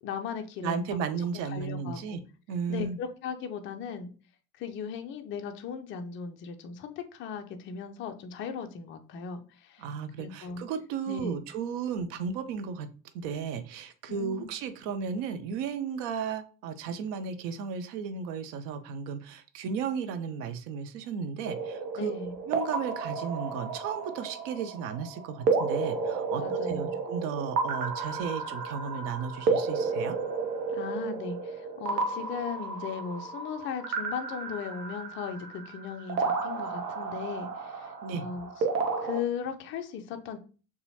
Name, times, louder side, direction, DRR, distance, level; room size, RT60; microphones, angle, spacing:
voice 1, 0.0-1.0 1.5-2.2 2.7-4.1 4.6-9.9 10.2-10.6 11.1-11.4 14.1-14.5 22.0-22.4 26.4-27.0 30.7-37.9 38.2-38.5 39.0-40.4, left 6 dB, 25° left, 6 dB, 0.5 m, -37 dB
voice 2, 0.6-2.2 2.5-3.0 9.8-12.9 13.1-22.1 22.5-30.2 38.0-38.3, right 6 dB, 30° right, 10 dB, 0.4 m, -34 dB
sound 1, 21.4-39.2, right 4 dB, 65° right, 0.8 m, -32 dB
6.7 x 2.3 x 2.8 m, 0.36 s
figure-of-eight pair, 70°, 50 cm